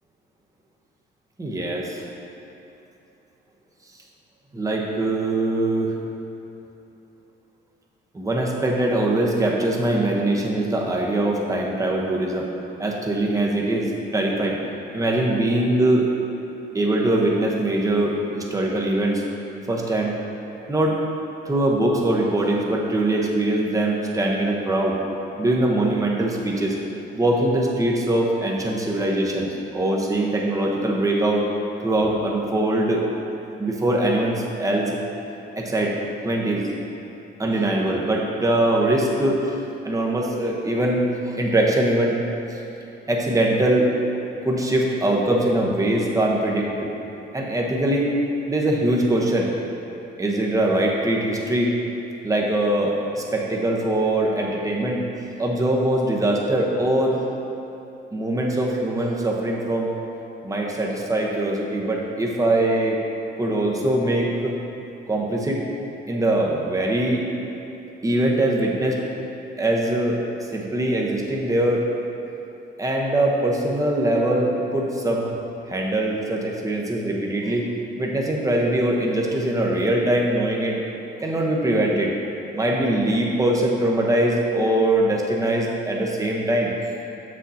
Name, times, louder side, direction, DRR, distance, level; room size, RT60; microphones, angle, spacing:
voice 1, 1.4-2.1 4.5-5.9 8.1-12.5 12.8-14.6 14.9-16.1 16.7-19.2 19.7-20.1 20.7-21.0 21.4-25.0 25.4-26.8 27.1-31.5 31.8-33.0 33.6-35.0 35.6-35.9 36.2-36.6 37.4-39.5 39.8-42.2 42.5-42.6 43.1-43.9 44.4-46.7 47.3-48.1 48.5-49.5 50.2-51.7 52.2-55.0 55.4-57.2 58.1-59.9 60.4-63.0 63.4-64.5 65.1-65.6 66.1-67.2 68.0-69.0 69.6-70.2 70.5-71.9 72.8-75.4 75.7-77.7 78.0-80.8 81.2-82.1 82.5-86.7, right 1 dB, 15° right, -2 dB, 0.9 m, -22 dB
7.1 x 6.3 x 2.8 m, 2.9 s
cardioid pair, 90°, 20 cm